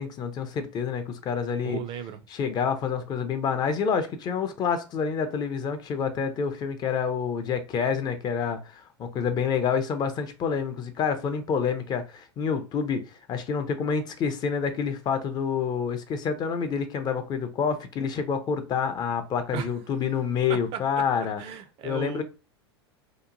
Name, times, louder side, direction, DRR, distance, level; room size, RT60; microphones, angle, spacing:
voice 1, 0.0-1.8 2.3-13.0 13.3-21.4 21.8-22.2, left 6 dB, 30° left, 0.4 m, -28 dB
voice 2, 1.6-2.2 19.5-19.7 21.4-22.2, right 8 dB, 40° right, 0.4 m, -35 dB
2.8 x 2.2 x 2.5 m
hypercardioid pair, 90°, 14 cm